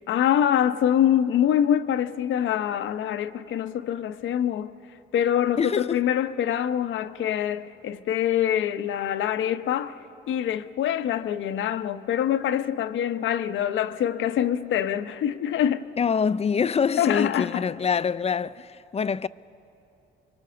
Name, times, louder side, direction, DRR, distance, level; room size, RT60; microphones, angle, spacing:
voice 1, 0.1-4.8 5.1-9.9 10.3-15.9 17.0-17.7, left 10 dB, 80° left, 0.8 m, -25 dB
voice 2, 5.6-6.0 16.0-19.3, left 6 dB, 30° left, 0.5 m, -25 dB
27.0 x 23.5 x 6.9 m
cardioid pair, 85°, 20 cm